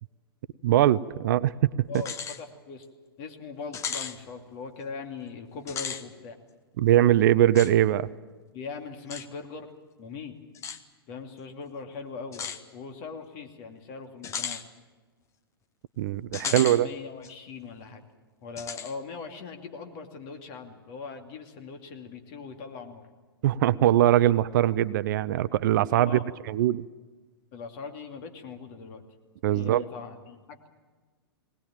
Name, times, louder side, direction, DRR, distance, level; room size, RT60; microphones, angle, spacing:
voice 1, 0.6-2.0 6.8-8.1 16.0-16.9 23.4-26.2 26.5-26.8 29.4-29.8, right 12 dB, 50° right, 17 dB, 0.6 m, -22 dB
voice 2, 1.9-2.9 3.2-6.4 8.5-9.7 10.0-10.4 11.1-14.6 16.4-18.0 18.4-23.1 25.9-26.3 27.5-29.0 29.5-30.7, left 5 dB, 40° left, 4 dB, 2.6 m, -40 dB
sound 1, 1.9-2.4 2.8-2.9 3.7-4.2 5.6-6.0 7.5-7.7 9.1-9.3 10.5-10.8 12.3-12.6 14.2-14.6 16.3-16.8 17.2-17.3 18.6-18.9, left 7 dB, 20° left, 1.1 m, -34 dB
19.5 x 19.0 x 8.9 m, 1.3 s
figure-of-eight pair, 105°, 13 cm